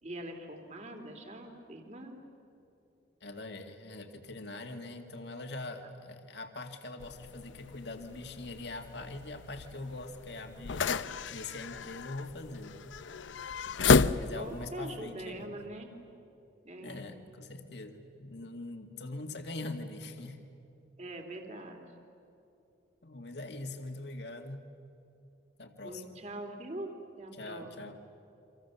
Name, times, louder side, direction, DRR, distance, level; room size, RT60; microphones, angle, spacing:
voice 1, 0.0-2.2 14.1-15.9 16.6-17.1 19.2-19.3 21.0-21.9 25.8-27.7, right 1 dB, 40° right, 4 dB, 3.0 m, -43 dB
voice 2, 3.2-12.8 14.1-15.7 16.8-20.4 23.0-24.7 25.6-26.0 27.3-28.0, left 2 dB, 65° left, 5 dB, 2.2 m, -43 dB
sound 1, 7.0-14.7, left 4 dB, 85° left, 0.6 m, -32 dB
30.0 x 26.0 x 7.1 m, 2.8 s
head